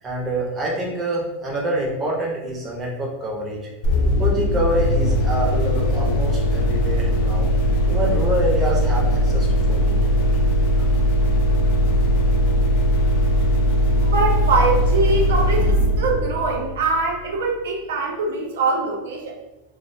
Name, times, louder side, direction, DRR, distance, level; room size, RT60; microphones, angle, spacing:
voice 1, 0.0-3.6 4.2-7.5 7.9-10.3 10.8-10.9, right 1 dB, 20° right, -3 dB, 0.6 m, -26 dB
sound 1, 3.8-17.3, equal, 55° left, 0.3 m, -19 dB
voice 2, 14.0-19.4, right 3 dB, 90° right, 0 dB, 0.5 m, -23 dB
2.3 x 2.1 x 2.6 m, 0.98 s
supercardioid pair, 155°, 0 cm